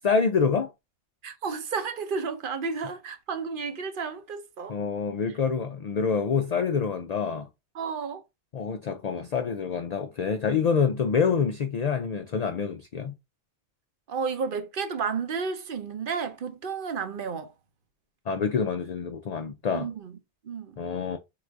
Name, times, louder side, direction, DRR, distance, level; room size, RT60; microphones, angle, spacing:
voice 1, 0.0-0.7 4.7-7.5 8.5-13.1 18.3-19.9 20.8-21.2, left 5 dB, 60° left, 0.4 m, -26 dB
voice 2, 1.2-4.8 7.7-8.2 14.1-17.5 19.7-20.1 20.4-20.8, right 5 dB, 55° right, 0.8 m, -32 dB
3.8 x 2.5 x 4.5 m
omnidirectional pair, 1.1 m